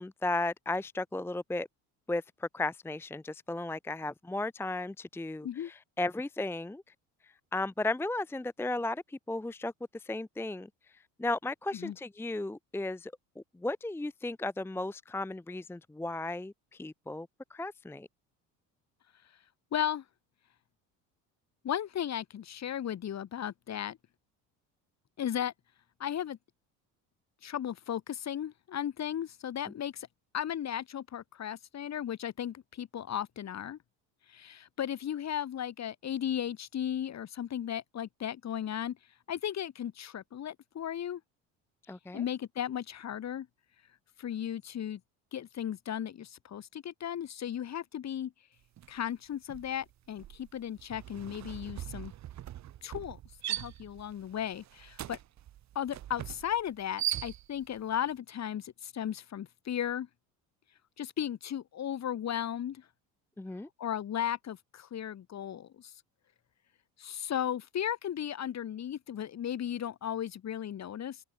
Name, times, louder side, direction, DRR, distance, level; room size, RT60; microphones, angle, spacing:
voice 1, 0.0-1.7 2.1-6.8 7.5-10.7 11.2-18.1 41.9-42.2 63.4-63.7, left 2 dB, 5° left, 0.8 m, -35 dB
voice 2, 19.7-20.0 21.6-24.0 25.2-25.5 26.0-26.4 27.4-30.1 30.3-33.8 34.3-39.0 39.3-41.2 42.1-43.5 44.2-45.0 45.3-48.3 48.9-52.1 52.8-53.2 53.5-55.2 55.7-60.1 61.0-62.8 63.8-65.9 67.0-71.2, left 10 dB, 45° left, 3.2 m, -35 dB
sound 1, 48.8-49.0 49.3-57.8, right 12 dB, 50° right, 1.2 m, -40 dB
supercardioid pair, 100°, 37 cm